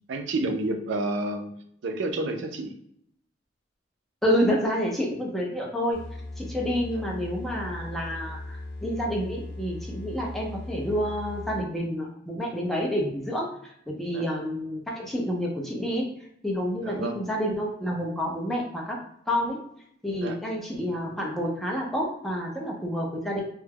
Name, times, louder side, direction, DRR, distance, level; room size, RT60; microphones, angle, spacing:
voice 1, 0.1-1.5 1.8-2.7 14.1-14.2 16.8-17.2 20.2-20.4, right 2 dB, 65° right, 5 dB, 0.4 m, -29 dB
voice 2, 4.2-6.0 6.4-16.1 16.4-19.0 19.3-19.6 20.0-23.4, equal, ahead, -2 dB, 0.4 m, -29 dB
sound 1, 5.9-11.8, left 2 dB, 55° left, 0.6 m, -38 dB
2.2 x 2.0 x 3.4 m, 0.71 s
head